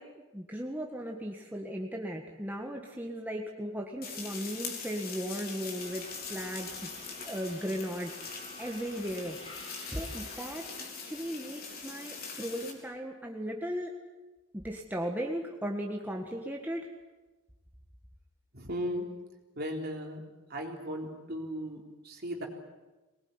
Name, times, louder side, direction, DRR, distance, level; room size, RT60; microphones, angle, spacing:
voice 1, 0.0-6.9 7.2-9.6 9.9-13.9 14.5-16.9, equal, 10° right, 1 dB, 1.6 m, -37 dB
sound 1, 4.0-12.7, left 5 dB, 45° left, 4.0 m, -42 dB
Subway metro underground, 5.8-10.8, left 1 dB, 25° left, 7.3 m, -51 dB
voice 2, 18.5-19.0 19.6-20.2 20.5-22.5, equal, 45° right, 1 dB, 3.8 m, -36 dB
22.5 x 20.0 x 9.7 m, 1.2 s
head